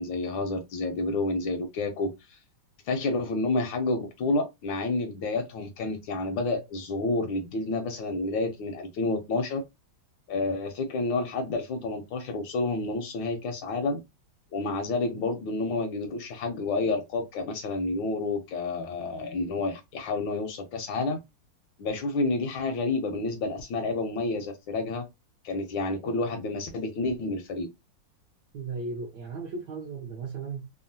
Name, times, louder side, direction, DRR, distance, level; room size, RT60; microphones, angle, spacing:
voice 1, 0.0-2.4 2.9-9.6 10.3-14.0 14.5-21.2 21.8-25.0 25.4-27.7, left 3 dB, 75° left, 1.2 m, -29 dB
voice 2, 28.5-30.7, right 4 dB, 70° right, 1.0 m, -36 dB
3.5 x 2.1 x 2.6 m
omnidirectional pair, 2.4 m